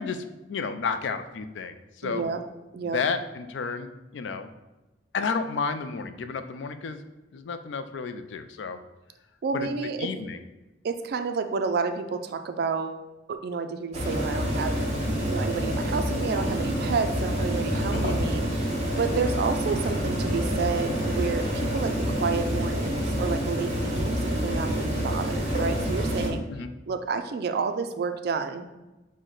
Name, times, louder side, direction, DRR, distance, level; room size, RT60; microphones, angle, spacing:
voice 1, 0.0-2.2 2.8-4.5 5.1-7.0 7.3-8.8 9.5-9.7 10.0-10.4 17.9-18.2 26.5-26.7, left 5 dB, 75° left, 9 dB, 0.4 m, -31 dB
voice 2, 2.0-2.4 2.7-3.0 9.4-10.1 10.8-13.0 13.3-14.8 15.3-18.7 19.0-26.4 26.9-28.7, right 5 dB, 60° right, 8 dB, 0.4 m, -30 dB
sound 1, 13.9-26.3, equal, 40° right, 1.2 m, -27 dB
6.2 x 2.1 x 3.8 m, 1.1 s
head